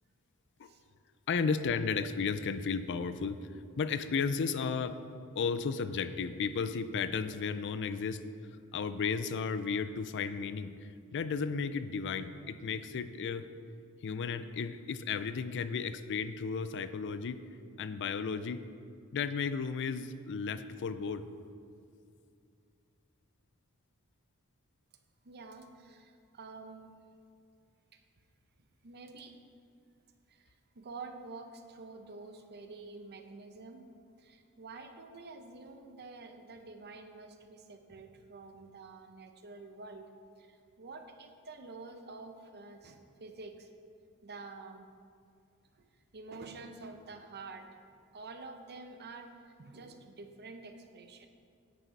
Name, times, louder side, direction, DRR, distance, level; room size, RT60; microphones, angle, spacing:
voice 1, 1.3-3.4 3.8-5.0 5.4-8.2 8.7-13.5 14.0-17.4 17.8-18.6 19.1-21.3, left 5 dB, 55° left, 12 dB, 0.4 m, -34 dB
voice 2, 25.2-26.9 27.9-28.0 28.8-29.3 30.3-33.9 34.2-40.1 40.4-43.7 44.2-44.9 45.7-45.8 46.1-47.7 48.1-51.3, right 3 dB, 50° right, 6 dB, 0.8 m, -48 dB
9.9 x 8.1 x 4.6 m, 2.4 s
head